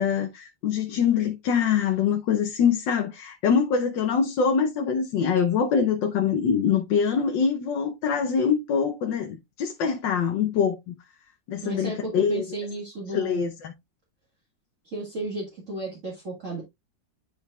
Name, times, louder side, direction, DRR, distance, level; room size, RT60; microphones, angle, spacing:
voice 1, 0.0-10.9 11.5-12.4 13.1-13.7, left 6 dB, 80° left, 1.6 m, -24 dB
voice 2, 11.6-13.5 14.9-16.6, right 2 dB, 45° right, 2.1 m, -33 dB
10.5 x 5.0 x 2.3 m
omnidirectional pair, 2.0 m